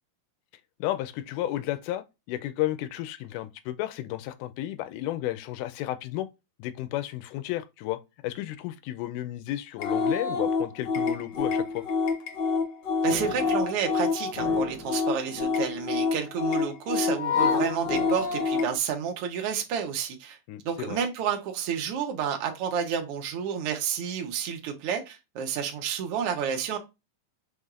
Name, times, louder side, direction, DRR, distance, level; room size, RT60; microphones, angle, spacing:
voice 1, 0.8-6.3 6.6-11.8 20.5-21.0, left 14 dB, 80° left, 2.0 m, -33 dB
sound 1, 9.8-18.8, left 5 dB, 65° left, 1.1 m, -27 dB
voice 2, 13.0-20.4 20.6-26.8, right 7 dB, 80° right, 1.3 m, -30 dB
5.6 x 3.4 x 2.4 m
omnidirectional pair, 3.8 m